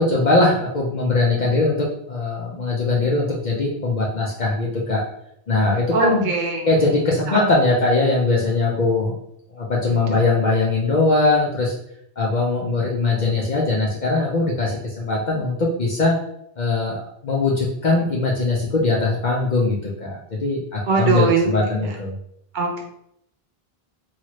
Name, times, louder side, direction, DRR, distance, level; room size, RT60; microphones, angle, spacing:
voice 1, 0.0-5.0 5.5-6.3 6.7-9.2 9.5-11.7 12.2-16.2 16.6-22.1, left 3 dB, 55° left, -3 dB, 0.6 m, -21 dB
voice 2, 5.9-6.7 7.0-7.4 9.9-10.2 20.8-21.5 22.5-22.8, right 4 dB, 60° right, 1 dB, 0.6 m, -22 dB
2.9 x 2.4 x 3.0 m, 0.73 s
omnidirectional pair, 1.0 m